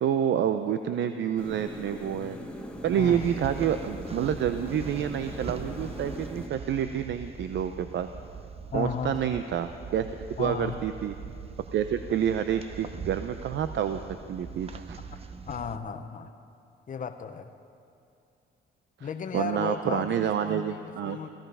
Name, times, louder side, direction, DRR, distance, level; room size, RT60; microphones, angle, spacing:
voice 1, 0.0-2.4 2.8-8.1 8.7-10.1 10.4-11.1 11.7-14.0 14.3-15.0 19.0-19.1 19.3-21.2, right 9 dB, 65° right, 9 dB, 0.6 m, -28 dB
sound 1, 1.4-6.5, left 1 dB, 5° left, 1.3 m, -40 dB
sound 2, 2.7-15.8, right 5 dB, 30° right, 0.7 m, -42 dB
voice 2, 3.0-3.3 8.7-9.2 10.4-10.8 15.5-16.3 16.9-17.5 19.0-21.3, left 6 dB, 40° left, 7 dB, 0.8 m, -35 dB
15.5 x 14.5 x 5.5 m, 2.6 s
cardioid pair, 90°, 20 cm